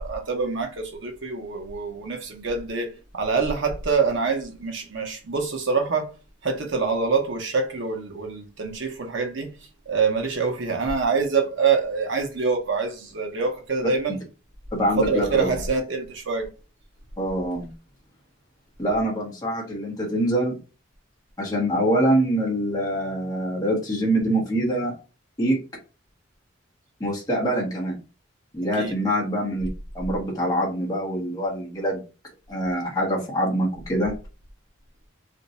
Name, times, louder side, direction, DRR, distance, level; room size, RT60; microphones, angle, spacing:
voice 1, 0.0-6.1 6.4-9.5 9.9-14.2 14.8-16.5 28.8-28.9, right 4 dB, 65° right, 0.8 m, -25 dB
voice 2, 14.7-15.5 17.2-17.7 18.8-20.6 21.4-24.9 25.4-25.6 27.0-28.0 28.5-29.7 29.9-32.0 32.5-34.1, right 1 dB, 20° left, 0.9 m, -24 dB
2.6 x 2.2 x 4.0 m
head